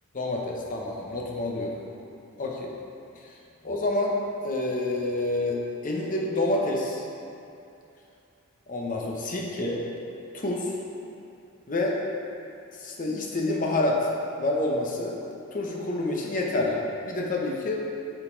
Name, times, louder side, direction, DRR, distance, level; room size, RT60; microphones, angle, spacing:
voice 1, 0.1-1.8 2.4-2.7 3.6-4.1 4.4-5.6 5.8-7.1 8.7-9.8 10.3-10.7 11.7-12.0 12.8-14.1 14.4-15.2 15.5-17.8, left 2 dB, 35° left, -2 dB, 0.7 m, -28 dB
6.2 x 3.9 x 4.5 m, 2.7 s
head